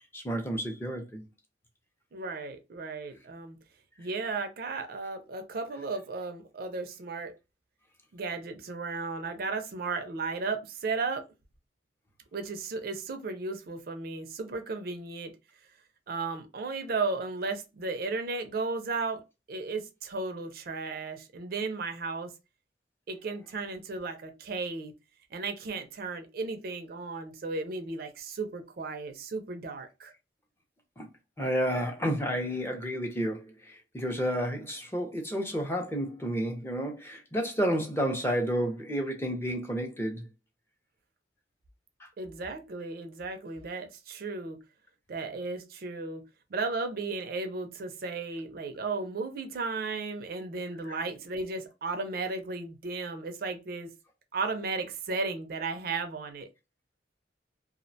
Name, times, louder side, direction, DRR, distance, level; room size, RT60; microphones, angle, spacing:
voice 1, 0.1-1.2 31.0-31.1 31.4-40.3 42.0-42.1 50.9-51.0, equal, 15° left, 0.5 m, -31 dB
voice 2, 2.1-3.6 4.0-7.3 8.1-11.2 12.3-15.3 16.1-19.2 19.5-22.3 23.1-24.9 25.3-30.1 42.2-44.6 45.1-46.2 46.5-53.9 54.3-56.5, right 3 dB, 55° right, 0.4 m, -35 dB
2.3 x 2.1 x 2.6 m
head